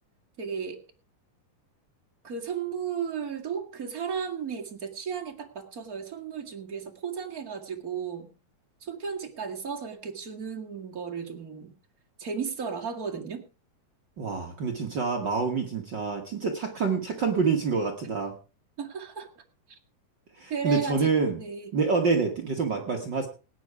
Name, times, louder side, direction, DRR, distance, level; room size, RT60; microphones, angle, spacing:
voice 1, 0.4-0.8 2.2-8.3 8.8-11.7 12.2-13.4 18.8-19.4 19.7-19.8 20.5-21.7, right 6 dB, 30° right, 2 dB, 2.0 m, -34 dB
voice 2, 14.2-18.4 20.4-21.4 21.7-23.3, right 5 dB, 50° right, 4 dB, 1.4 m, -27 dB
18.0 x 9.4 x 4.8 m, 0.33 s
omnidirectional pair, 3.8 m